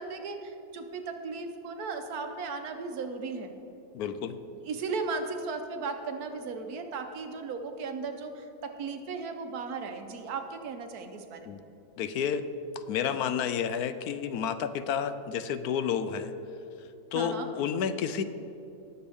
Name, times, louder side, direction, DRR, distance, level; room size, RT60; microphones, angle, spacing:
voice 1, 0.0-3.5 4.6-11.5 17.1-17.5, right 4 dB, 75° right, 6 dB, 1.4 m, -36 dB
voice 2, 3.9-4.4 11.5-11.6 12.0-12.5 12.8-16.3 17.1-18.2, left 7 dB, 80° left, 11 dB, 1.1 m, -30 dB
19.5 x 7.0 x 3.5 m, 3.0 s
omnidirectional pair, 1.6 m